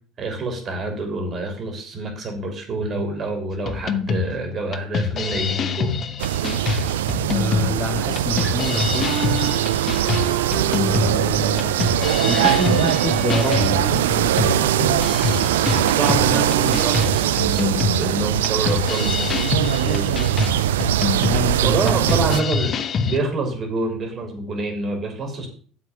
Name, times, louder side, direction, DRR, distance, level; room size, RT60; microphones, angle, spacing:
voice 1, 0.2-5.9 15.9-19.3 21.6-22.7 23.1-25.5, right 2 dB, 45° right, 4 dB, 3.4 m, -27 dB
sound 1, 3.7-23.2, left 5 dB, 45° left, 0.9 m, -26 dB
sound 2, 6.2-22.4, right 12 dB, 80° right, 0.4 m, -21 dB
voice 2, 7.3-9.1 10.7-11.8 12.3-14.9 18.9-19.0 19.8-20.2 21.3-22.4, left 1 dB, 10° left, 2 dB, 2.1 m, -27 dB
Wind instrument woodwind instrument, 9.0-17.2, right 8 dB, 60° right, 2.9 m, -31 dB
7.5 x 6.2 x 7.3 m, 0.43 s
hypercardioid pair, 70°, 0 cm